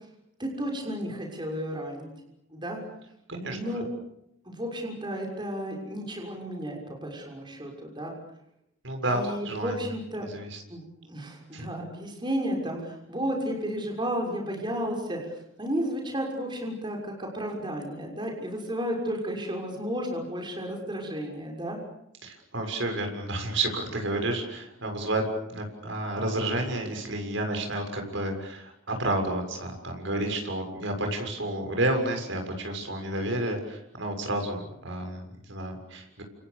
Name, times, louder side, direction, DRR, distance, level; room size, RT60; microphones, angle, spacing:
voice 1, 0.4-2.1 2.5-2.8 3.5-3.9 4.4-8.1 9.1-10.2 10.7-21.8, equal, 20° right, 1 dB, 6.5 m, -33 dB
voice 2, 8.8-9.8 10.3-10.6 11.5-11.7 22.2-36.2, right 1 dB, 65° right, 3 dB, 7.0 m, -30 dB
29.0 x 28.5 x 7.0 m, 0.78 s
head